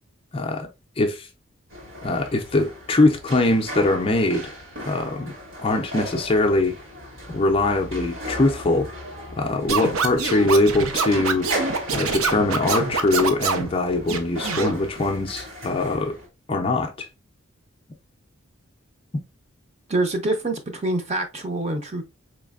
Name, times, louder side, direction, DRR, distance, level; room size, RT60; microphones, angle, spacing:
voice 1, 0.3-0.7 1.0-1.3 2.0-4.6 4.8-6.8 7.3-8.9 9.4-11.5 11.9-16.2 16.5-17.1, left 2 dB, 25° left, 0.4 m, -22 dB
sound 1, 1.7-16.3, equal, 70° right, 2.0 m, -36 dB
Scratching (performance technique), 9.7-13.7 14.1-14.7, right 5 dB, 85° right, 0.6 m, -25 dB
voice 2, 19.9-22.0, right 2 dB, 30° right, 0.6 m, -25 dB
4.2 x 3.1 x 2.3 m
head